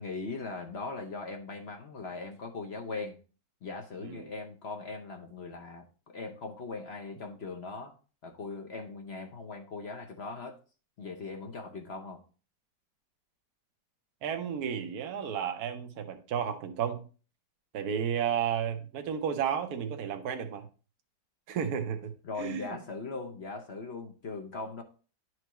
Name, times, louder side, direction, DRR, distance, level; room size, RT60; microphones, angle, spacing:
voice 1, 0.0-3.2 3.6-8.0 8.2-10.6 11.0-12.2 22.2-24.8, left 3 dB, 50° left, 0.8 m, -40 dB
voice 2, 14.2-17.0 17.7-20.7 21.5-22.8, right 8 dB, 65° right, 1.3 m, -32 dB
11.0 x 4.6 x 3.0 m
omnidirectional pair, 1.9 m